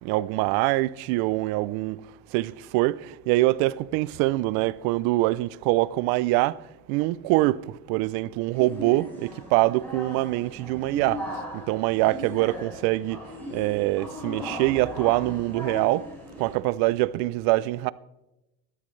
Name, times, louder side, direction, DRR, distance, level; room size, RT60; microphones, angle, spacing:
voice 1, 0.0-2.0 2.3-6.6 6.9-11.2 11.5-13.2 13.5-16.1 16.4-17.9, right 19 dB, 60° right, 0.5 m, -24 dB
sound 1, 8.5-16.5, equal, 5° left, 6.1 m, -38 dB
17.0 x 12.5 x 3.2 m
cardioid pair, 140°, 41 cm